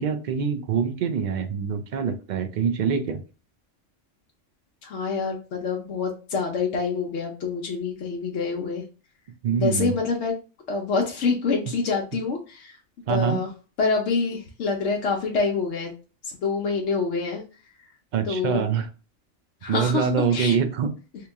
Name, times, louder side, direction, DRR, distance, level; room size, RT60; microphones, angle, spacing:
voice 1, 0.0-3.2 9.4-9.9 13.1-13.4 18.1-18.9 19.7-20.9, right 7 dB, 65° right, 7 dB, 0.4 m, -24 dB
voice 2, 4.8-8.8 9.5-10.3 10.7-12.8 13.1-13.5 13.8-15.9 16.2-17.4 18.2-18.6 19.6-20.6, left 4 dB, 70° left, 0 dB, 0.9 m, -26 dB
2.9 x 2.8 x 3.4 m, 0.35 s
omnidirectional pair, 1.3 m